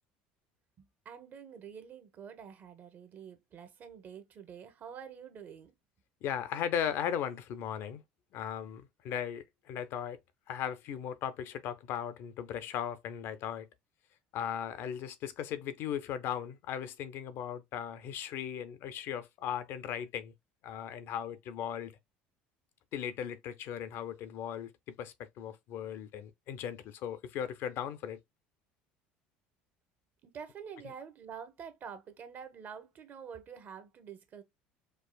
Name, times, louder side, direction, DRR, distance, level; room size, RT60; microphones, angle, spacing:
voice 1, 0.8-5.7 30.2-34.4, right 7 dB, 45° right, 1.0 m, -47 dB
voice 2, 6.2-8.0 8.3-10.2 10.5-13.7 14.3-20.3 20.6-21.9 22.9-28.2, left 9 dB, 60° left, 0.6 m, -37 dB
4.6 x 2.4 x 2.2 m
supercardioid pair, 85°, 4 cm